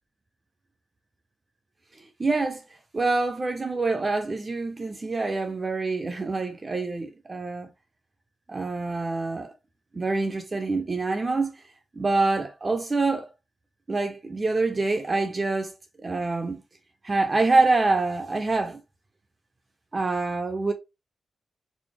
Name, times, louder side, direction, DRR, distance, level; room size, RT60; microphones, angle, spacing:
voice 1, 2.2-2.6 2.9-7.7 8.5-9.5 9.9-11.6 12.0-13.3 13.9-15.7 16.0-16.6 17.0-18.8 19.9-20.7, right 3 dB, 30° right, 0.5 m, -26 dB
4.0 x 2.0 x 3.3 m
wide cardioid pair, 125°, 0 cm